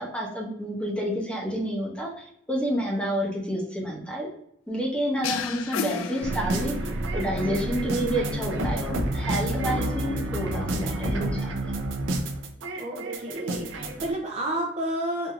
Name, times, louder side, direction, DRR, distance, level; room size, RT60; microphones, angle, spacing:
voice 1, 0.0-4.3 4.7-6.7 7.1-11.5, equal, 5° left, -4 dB, 0.9 m, -29 dB
sound 1, 5.2-7.0, left 7 dB, 85° left, 0.3 m, -32 dB
sound 2, 6.2-14.1, right 1 dB, 75° right, 0.6 m, -29 dB
voice 2, 12.8-15.3, right 1 dB, 30° right, -1 dB, 0.5 m, -30 dB
4.4 x 2.7 x 2.4 m, 0.73 s
head